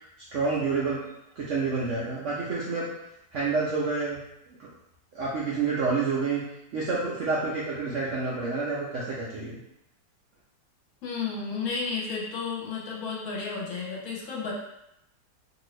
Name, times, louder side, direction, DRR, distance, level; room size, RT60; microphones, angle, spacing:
voice 1, 0.3-1.0 1.4-2.9 3.3-4.2 4.6-4.7 5.1-6.4 6.7-9.6, right 4 dB, 75° right, -6 dB, 0.7 m, -28 dB
voice 2, 11.0-14.5, left 5 dB, 60° left, -3 dB, 1.1 m, -32 dB
2.8 x 2.6 x 3.1 m, 0.83 s
omnidirectional pair, 2.0 m